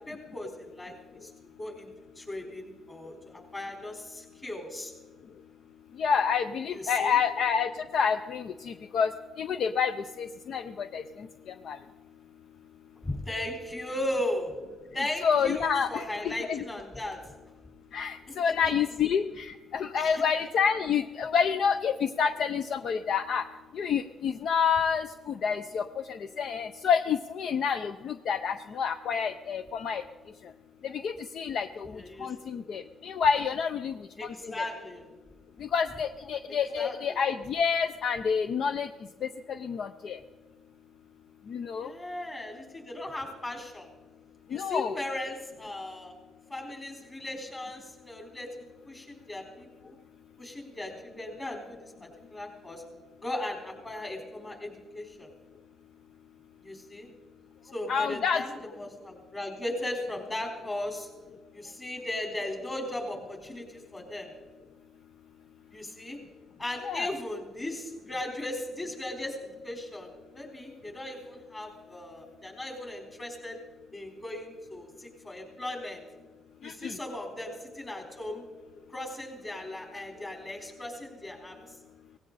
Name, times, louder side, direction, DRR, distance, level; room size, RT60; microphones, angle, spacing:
voice 1, 0.1-0.9 1.2-1.3 1.6-1.9 2.2-4.9 6.7-7.2 13.0-14.5 14.9-17.3 18.3-18.5 20.0-20.2 31.9-32.3 34.2-35.1 36.5-37.2 41.8-43.9 44.5-46.1 46.5-49.9 50.4-52.8 53.2-55.3 56.6-57.1 57.7-61.1 61.5-64.3 65.7-66.2 66.6-73.6 73.9-76.0 76.6-78.4 78.9-81.7, left 1 dB, 25° left, 2 dB, 4.2 m, -37 dB
voice 2, 6.0-9.1 9.4-11.0 11.7-11.8 15.2-16.6 17.9-23.5 23.7-30.0 30.8-31.9 32.2-34.6 35.6-38.9 39.2-39.3 39.6-40.2 41.5-41.9 44.5-45.0 57.9-58.4 66.8-67.1 76.6-77.0, left 6 dB, 65° left, 10 dB, 0.5 m, -28 dB
17.5 x 16.0 x 4.1 m, 1.3 s
cardioid pair, 90°, 0 cm